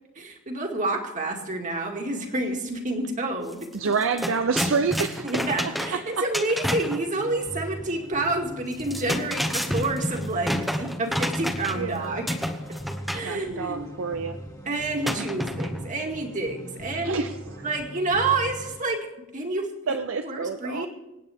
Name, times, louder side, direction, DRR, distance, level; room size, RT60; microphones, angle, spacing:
voice 1, 0.2-3.7 5.2-12.4 13.1-13.9 14.7-17.3 17.6-19.1 19.3-19.7 20.2-20.9, right 2 dB, 35° right, 2 dB, 2.1 m, -28 dB
sound 1, 3.5-3.6 3.9-7.0 8.7-11.9 12.3-13.3 15.0-15.9, equal, ahead, 0.9 m, -29 dB
voice 2, 3.7-6.3 11.7-12.2 13.2-14.4 17.0-17.3 19.9-20.9, right 5 dB, 65° right, 8 dB, 0.6 m, -28 dB
sound 2, 7.2-18.8, right 1 dB, 15° left, 1.9 m, -40 dB
26.0 x 8.9 x 3.5 m, 0.99 s
head